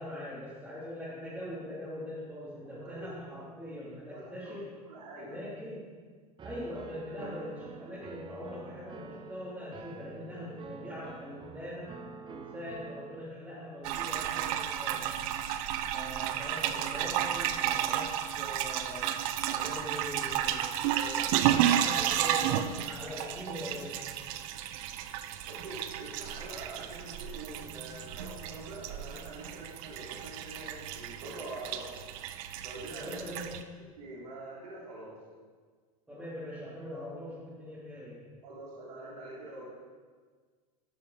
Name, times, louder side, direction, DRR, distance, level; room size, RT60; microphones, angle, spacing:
voice 1, 0.0-4.7 5.1-5.9 6.4-15.1 15.8-24.1 32.9-33.6 36.1-38.4, left 1 dB, 5° right, -11 dB, 3.3 m, -42 dB
voice 2, 2.6-3.3 4.0-4.6 4.9-5.4 25.5-32.0 32.6-33.2 34.0-35.2 38.4-39.6, right 2 dB, 85° right, -5 dB, 3.5 m, -45 dB
Piano, 6.4-13.2, right 6 dB, 25° right, 0.8 m, -47 dB
sound 1, 13.8-33.6, right 11 dB, 60° right, 0.7 m, -32 dB
13.5 x 6.6 x 5.0 m, 1.5 s
hypercardioid pair, 105°, 20 cm